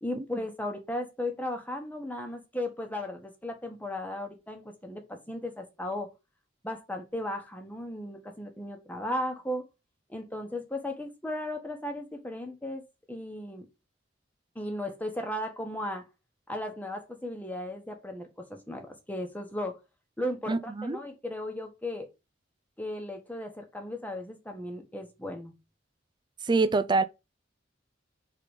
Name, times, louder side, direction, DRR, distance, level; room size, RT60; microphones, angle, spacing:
voice 1, 0.0-6.1 6.6-9.6 10.1-12.8 13.1-13.6 14.5-16.1 16.5-19.8 20.2-22.1 22.8-25.5, left 1 dB, 10° left, 1.1 m, -36 dB
voice 2, 20.5-21.0 26.5-27.0, right 3 dB, 25° right, 0.4 m, -25 dB
4.8 x 3.8 x 5.2 m
head